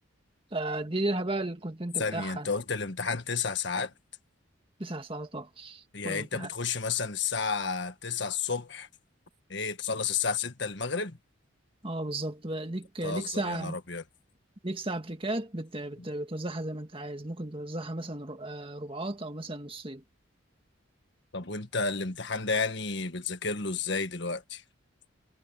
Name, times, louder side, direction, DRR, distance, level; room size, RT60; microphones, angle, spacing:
voice 1, 0.5-2.5 4.8-6.5 11.8-13.8 14.6-20.0, right 2 dB, 25° right, 1.9 m, -34 dB
voice 2, 2.0-3.9 5.9-8.9 9.5-11.2 13.0-14.0 21.3-24.6, left 5 dB, 55° left, 1.6 m, -31 dB
head